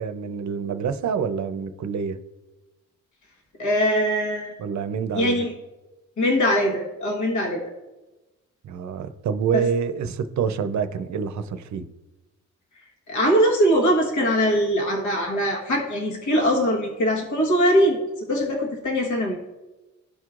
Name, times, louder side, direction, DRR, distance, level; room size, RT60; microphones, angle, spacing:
voice 1, 0.0-2.2 4.6-5.4 8.6-11.8, right 6 dB, 65° right, 10 dB, 0.6 m, -27 dB
voice 2, 3.6-4.5 5.1-5.5 6.2-7.6 9.5-9.6 13.1-18.0 18.3-19.4, equal, 70° left, 0 dB, 1.3 m, -21 dB
13.5 x 4.6 x 2.4 m, 1.1 s
wide cardioid pair, 155°, 30 cm